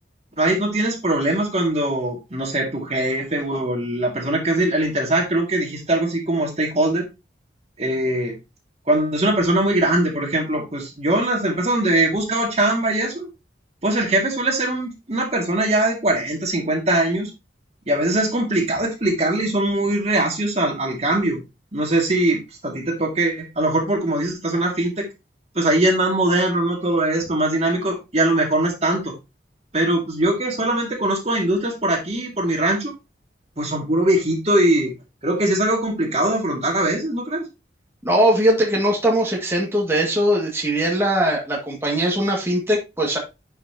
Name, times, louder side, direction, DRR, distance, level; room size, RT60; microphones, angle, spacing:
voice 1, 0.4-7.0 7.8-8.4 8.9-13.3 13.8-17.3 17.9-21.4 21.7-25.1 25.5-29.1 29.7-32.9 33.6-34.9 35.2-37.4, right 1 dB, 35° right, 2 dB, 2.2 m, -21 dB
voice 2, 38.0-43.2, right 1 dB, 15° right, -2 dB, 2.0 m, -20 dB
11.0 x 5.8 x 2.9 m, 0.25 s
head